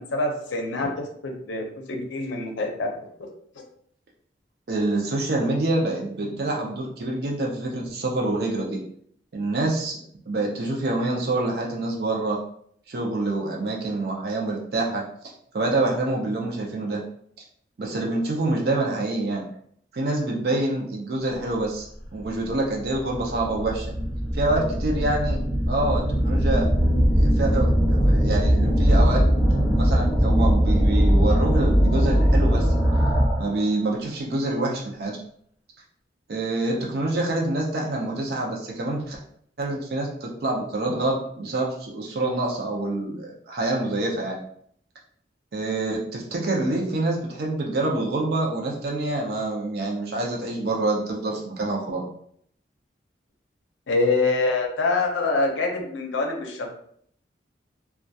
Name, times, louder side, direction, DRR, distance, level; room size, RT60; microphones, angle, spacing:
voice 1, 0.0-2.9 3.2-3.3 53.9-56.7, left 3 dB, 90° left, 2 dB, 0.5 m, -25 dB
voice 2, 4.7-8.8 9.3-10.0 10.3-12.4 12.9-17.0 17.8-19.5 19.9-23.9 24.3-25.4 25.7-26.7 27.1-29.2 29.6-32.7 33.4-35.2 36.3-39.2 39.6-44.4 45.5-52.0, right 2 dB, 55° right, -1 dB, 0.4 m, -26 dB
sound 1, 22.1-22.2 22.9-33.6, equal, ahead, 1.1 m, -20 dB
2.6 x 2.2 x 2.2 m, 0.64 s
head